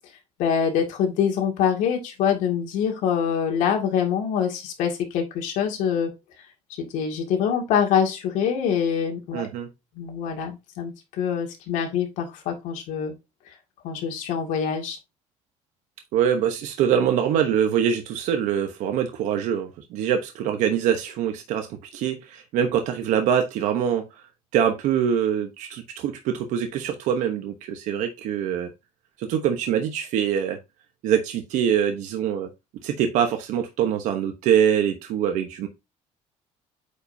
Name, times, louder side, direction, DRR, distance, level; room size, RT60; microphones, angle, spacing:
voice 1, 0.4-6.1 6.9-9.5 10.0-10.9 11.2-13.1 13.8-15.0, left 7 dB, 85° left, 2.1 m, -24 dB
voice 2, 9.3-9.7 16.1-24.0 24.5-28.7 29.2-30.6 31.0-32.5 32.8-35.7, right 9 dB, 75° right, 1.0 m, -24 dB
8.4 x 5.2 x 2.7 m
cardioid pair, 170°, 13 cm